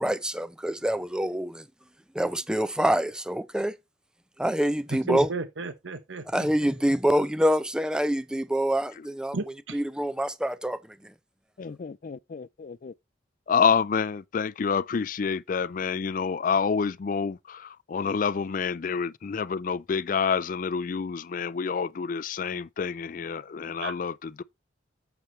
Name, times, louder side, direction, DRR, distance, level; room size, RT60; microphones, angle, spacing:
voice 1, 0.0-1.6 2.1-3.7 4.4-5.3 6.3-9.4 9.7-10.8, equal, 5° right, 0.5 m, -26 dB
voice 2, 5.1-6.5 9.3-9.8 23.8-23.9, right 3 dB, 85° right, 1.0 m, -33 dB
voice 3, 11.6-12.9 13.5-24.4, left 6 dB, 45° left, 0.4 m, -28 dB
8.6 x 7.1 x 3.2 m
head